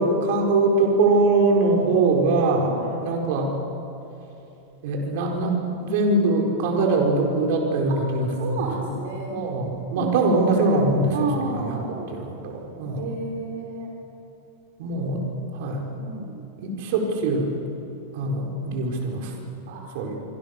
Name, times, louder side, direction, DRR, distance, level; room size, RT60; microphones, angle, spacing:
voice 1, 0.0-2.7 3.0-3.5 4.8-8.9 9.3-11.8 12.1-13.1 14.8-15.2 15.5-15.8 16.6-17.5 18.1-19.3 19.9-20.2, right 2 dB, 55° right, 1 dB, 4.8 m, -22 dB
voice 2, 8.4-9.3 10.0-10.4 11.1-12.1 13.0-13.9 16.0-16.4 19.7-19.8, right 4 dB, 70° right, 0 dB, 3.7 m, -31 dB
25.5 x 25.0 x 6.8 m, 2.9 s
supercardioid pair, 165°, 0 cm